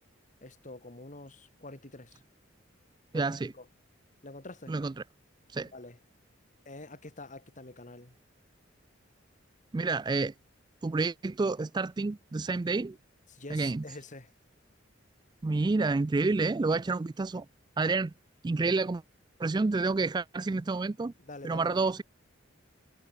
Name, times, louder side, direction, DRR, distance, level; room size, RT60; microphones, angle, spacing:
voice 1, 0.4-2.2 3.1-3.7 4.2-4.7 5.7-6.0 6.7-8.2 13.3-14.3 21.2-21.8, left 2 dB, 40° left, 2.3 m, -46 dB
voice 2, 3.1-3.5 4.7-5.0 5.5-5.7 9.7-10.3 10.8-13.0 13.5-13.8 15.4-17.5 17.8-18.1 18.4-19.0 19.4-21.1 21.4-22.0, right 3 dB, 20° right, 0.3 m, -29 dB
head